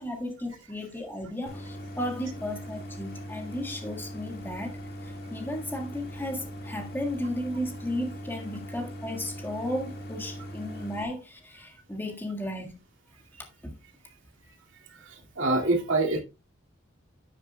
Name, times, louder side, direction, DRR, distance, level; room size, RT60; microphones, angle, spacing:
voice 1, 0.0-4.8 5.0-12.7 13.6-13.7, left 1 dB, 10° left, 1.7 m, -34 dB
Idling, 1.5-11.0, equal, 50° left, 1.9 m, -40 dB
voice 2, 14.9-16.2, right 2 dB, 70° right, 2.2 m, -26 dB
10.0 x 9.2 x 2.2 m
head